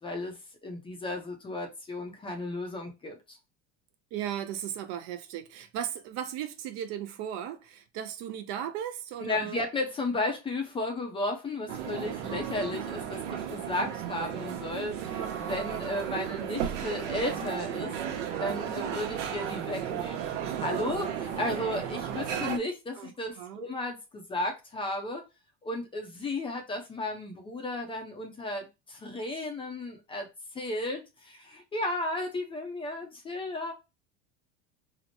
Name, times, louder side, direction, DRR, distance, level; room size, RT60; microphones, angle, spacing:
voice 1, 0.0-3.4 9.2-25.2 25.6-30.3 30.5-33.7, left 2 dB, 15° left, 0.5 m, -34 dB
voice 2, 4.1-9.6 23.0-23.6, right 10 dB, 50° right, 0.5 m, -36 dB
sound 1, 11.7-22.6, right 9 dB, 75° right, 0.8 m, -34 dB
3.0 x 2.0 x 4.1 m
supercardioid pair, 140°, 35 cm